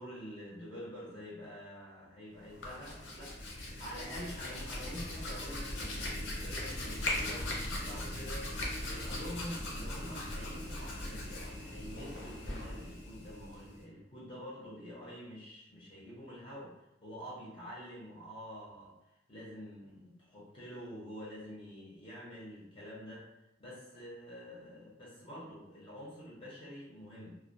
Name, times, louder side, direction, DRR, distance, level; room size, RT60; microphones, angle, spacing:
voice 1, 0.0-8.5 8.8-19.0 19.3-23.3 23.6-27.4, equal, 30° left, -8 dB, 0.7 m, -47 dB
Hands, 2.4-13.8, left 1 dB, 70° left, 0.6 m, -39 dB
2.2 x 2.1 x 2.6 m, 0.87 s
head